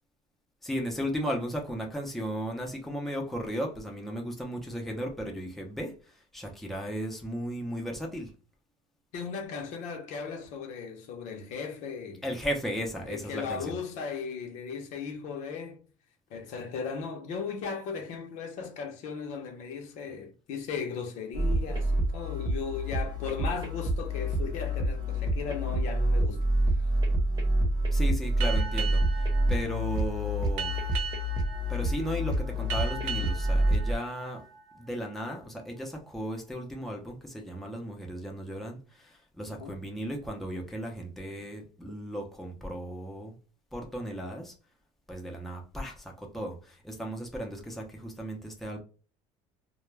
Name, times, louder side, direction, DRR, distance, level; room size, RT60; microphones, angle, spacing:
voice 1, 0.6-8.3 12.2-13.8 27.9-30.7 31.7-34.4 34.8-43.3 43.7-44.5 45.1-48.8, equal, ahead, 0.6 m, -35 dB
voice 2, 9.1-12.2 13.1-15.8 16.3-26.5 39.6-39.8, left 5 dB, 70° left, 0.7 m, -37 dB
sound 1, 21.3-33.9, right 1 dB, 30° right, 0.8 m, -27 dB
Boat Water vehicle, 28.4-35.5, right 6 dB, 80° right, 0.6 m, -39 dB
2.3 x 2.1 x 3.2 m
cardioid pair, 125°, 13 cm